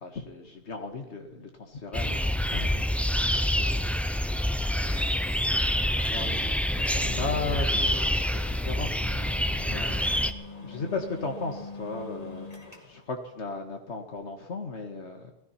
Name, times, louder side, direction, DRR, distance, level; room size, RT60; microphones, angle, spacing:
voice 1, 0.0-3.9 4.9-12.5 12.8-15.3, left 3 dB, 85° left, 4 dB, 2.0 m, -37 dB
sound 1, 1.9-10.3, equal, ahead, 0.6 m, -27 dB
sound 2, 4.9-5.1 5.6-6.2 6.5-6.6 6.8-13.1, left 3 dB, 35° left, 2.5 m, -44 dB
17.0 x 14.0 x 5.8 m, 0.92 s
omnidirectional pair, 1.1 m